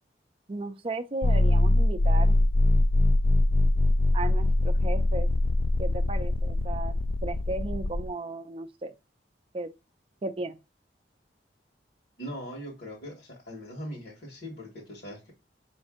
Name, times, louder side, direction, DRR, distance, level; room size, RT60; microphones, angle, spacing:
voice 1, 0.5-2.4 4.1-5.3 5.8-8.9 9.5-9.7 10.2-10.6, right 2 dB, 30° right, 0.4 m, -35 dB
sound 1, 1.2-8.1, left 1 dB, 35° left, 0.3 m, -23 dB
voice 2, 12.2-15.3, equal, 60° left, 1.3 m, -40 dB
5.1 x 2.6 x 3.6 m
head